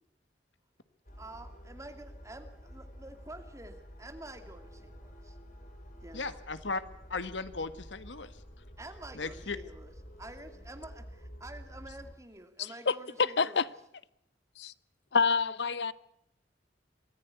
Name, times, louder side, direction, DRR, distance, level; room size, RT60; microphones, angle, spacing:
sound 1, 1.0-12.2, equal, 45° left, 4.1 m, -50 dB
voice 1, 1.2-5.4 6.0-6.4 8.8-9.9 10.2-13.7, right 1 dB, 15° right, 2.4 m, -48 dB
voice 2, 6.1-6.8 7.1-8.3 9.2-9.6, left 3 dB, 80° left, 1.7 m, -36 dB
voice 3, 12.6-13.7 14.6-14.7 15.1-15.9, left 5 dB, 65° left, 0.8 m, -28 dB
24.0 x 14.5 x 8.3 m
head